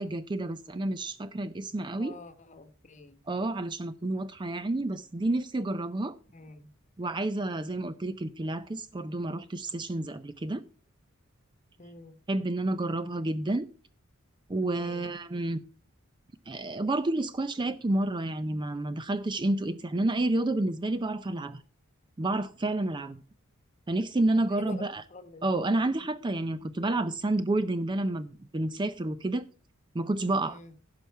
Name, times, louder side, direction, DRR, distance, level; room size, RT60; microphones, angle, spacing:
voice 1, 0.0-2.1 3.3-6.2 7.0-10.6 12.3-13.6 14.5-15.6 16.5-21.6 22.2-23.2 23.9-25.0 25.4-29.4 29.9-30.6, right 2 dB, 20° right, 0.4 m, -30 dB
voice 2, 2.0-3.2 6.3-6.7 11.8-12.2 14.8-15.1 24.6-25.5 30.4-30.7, left 3 dB, 35° left, 1.1 m, -47 dB
15.5 x 5.6 x 4.5 m
head